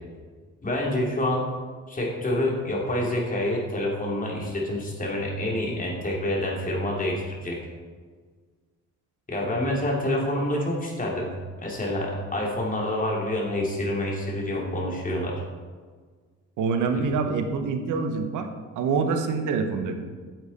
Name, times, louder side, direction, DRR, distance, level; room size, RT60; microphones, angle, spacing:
voice 1, 0.6-1.4 1.9-7.6 9.3-11.3 11.6-15.4 16.9-17.0, left 1 dB, 25° left, -2 dB, 2.7 m, -27 dB
voice 2, 16.6-18.5 18.7-20.0, right 5 dB, 85° right, 7 dB, 1.0 m, -25 dB
9.1 x 7.4 x 4.2 m, 1.5 s
cardioid pair, 90°, 30 cm